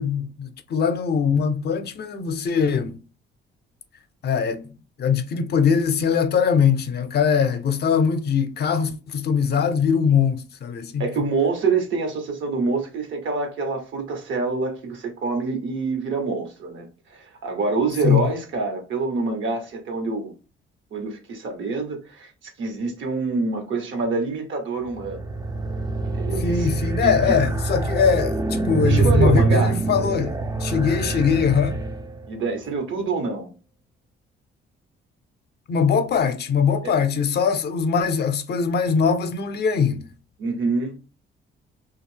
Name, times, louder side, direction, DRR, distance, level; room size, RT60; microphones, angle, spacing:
voice 1, 0.0-3.0 4.2-4.7 5.0-11.3 18.0-18.2 26.4-31.8 35.7-40.1, left 6 dB, 55° left, 0.5 m, -22 dB
voice 2, 11.0-20.3 20.9-22.3 22.6-25.3 26.0-26.7 27.0-27.5 28.8-29.8 32.3-33.5 36.8-37.0 40.4-41.0, right 3 dB, 75° right, 1.1 m, -26 dB
sound 1, 24.9-32.3, right 3 dB, 20° right, 0.4 m, -24 dB
2.7 x 2.4 x 3.1 m
cardioid pair, 90°, 20 cm